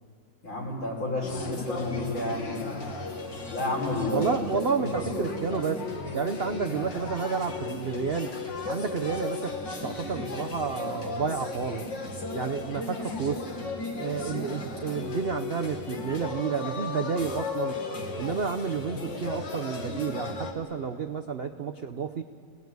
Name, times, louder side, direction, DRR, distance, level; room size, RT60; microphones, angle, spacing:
voice 1, 0.4-2.5 3.5-4.4 4.8-5.3 14.2-14.5, left 1 dB, 85° left, -2 dB, 6.3 m, -31 dB
sound 1, 1.2-20.5, left 3 dB, 65° left, 2.7 m, -35 dB
voice 2, 4.1-5.8 6.1-8.3 8.7-11.9 12.3-13.4 14.0-17.8 18.2-22.2, right 6 dB, 85° right, 7 dB, 0.5 m, -30 dB
30.0 x 18.5 x 9.5 m, 2.6 s
omnidirectional pair, 2.2 m